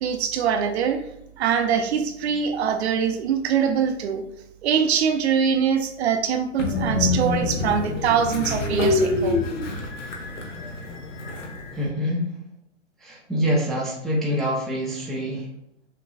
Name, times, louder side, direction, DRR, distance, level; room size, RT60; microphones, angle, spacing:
voice 1, 0.0-1.0 1.4-4.2 4.6-9.4, right 7 dB, 60° right, 6 dB, 0.7 m, -23 dB
Train, 6.6-11.9, left 2 dB, 75° left, 1.3 m, -26 dB
voice 2, 11.7-12.3 13.0-15.5, equal, ahead, -6 dB, 0.5 m, -25 dB
6.6 x 3.0 x 2.3 m, 0.78 s
hypercardioid pair, 145°, 37 cm